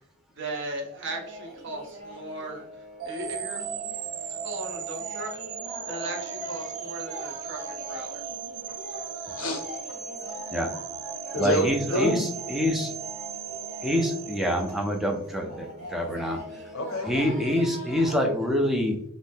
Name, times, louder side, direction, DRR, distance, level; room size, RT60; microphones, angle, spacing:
voice 1, 0.3-3.6 4.3-5.4 5.9-8.2 11.9-12.1 17.8-18.1, right 2 dB, 55° right, 2 dB, 0.7 m, -37 dB
sound 1, 1.0-18.2, equal, 30° right, 1.0 m, -42 dB
sound 2, 3.0-15.1, right 7 dB, 90° right, 0.4 m, -37 dB
voice 2, 9.4-10.7 11.3-12.2 16.7-17.3, equal, 75° left, 4 dB, 0.6 m, -30 dB
voice 3, 11.4-12.9 13.8-16.4 17.1-19.0, equal, ahead, 1 dB, 0.3 m, -26 dB
2.6 x 2.1 x 3.4 m, 0.70 s
head